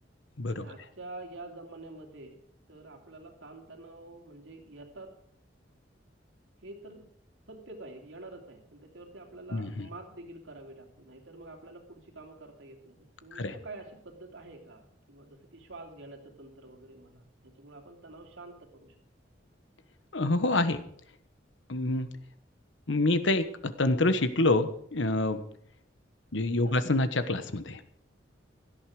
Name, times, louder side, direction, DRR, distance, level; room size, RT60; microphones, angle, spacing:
voice 1, 0.5-2.4 2.7-5.2 6.6-7.1 7.5-18.9 26.6-26.8, right 2 dB, 85° right, 3 dB, 2.9 m, -47 dB
voice 2, 9.5-9.9 13.3-13.5 20.1-20.8 21.7-22.1 22.9-25.4 26.3-27.8, left 2 dB, 75° left, 11 dB, 1.2 m, -27 dB
17.0 x 12.5 x 4.9 m, 0.66 s
head